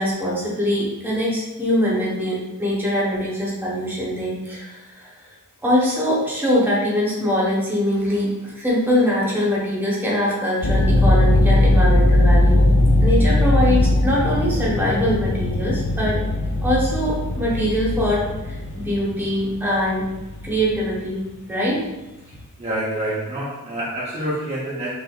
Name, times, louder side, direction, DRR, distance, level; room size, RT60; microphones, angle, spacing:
voice 1, 0.0-5.1 5.6-12.6 13.0-16.2 16.6-20.1 20.4-21.8, equal, 10° right, -5 dB, 1.0 m, -22 dB
sound 1, 10.6-21.6, left 1 dB, 55° left, 0.6 m, -19 dB
voice 2, 22.6-24.9, right 1 dB, 30° right, -7 dB, 0.7 m, -27 dB
6.3 x 2.5 x 2.4 m, 1.0 s
head